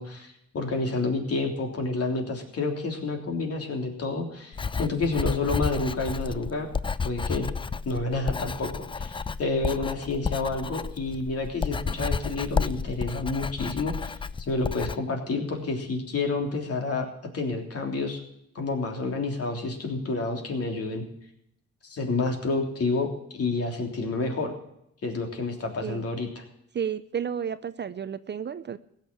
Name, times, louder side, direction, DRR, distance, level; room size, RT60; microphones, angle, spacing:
voice 1, 0.0-6.7 7.0-7.5 7.8-18.2 18.5-21.0 21.8-24.5 25.0-26.4, left 3 dB, 50° left, 3 dB, 3.3 m, -29 dB
Writing, 4.5-15.0, left 5 dB, 15° left, 0.4 m, -31 dB
voice 2, 26.7-28.8, right 8 dB, 35° right, 14 dB, 0.6 m, -32 dB
16.5 x 6.8 x 8.9 m, 0.76 s
cardioid pair, 90°, 30 cm